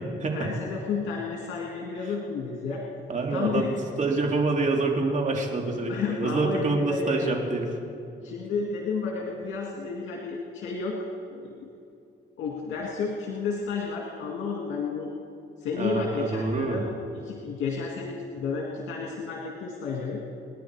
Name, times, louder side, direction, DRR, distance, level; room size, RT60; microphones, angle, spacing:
voice 1, 0.3-2.8 3.3-3.7 5.8-7.4 8.2-11.0 11.3-11.7 12.4-15.1 15.6-16.8 17.1-20.2, left 5 dB, 80° left, -2 dB, 2.0 m, -31 dB
voice 2, 3.1-3.7 4.0-7.7 15.8-16.8, right 3 dB, 40° right, 1 dB, 3.0 m, -26 dB
28.5 x 10.5 x 4.8 m, 2.6 s
cardioid pair, 90°, 20 cm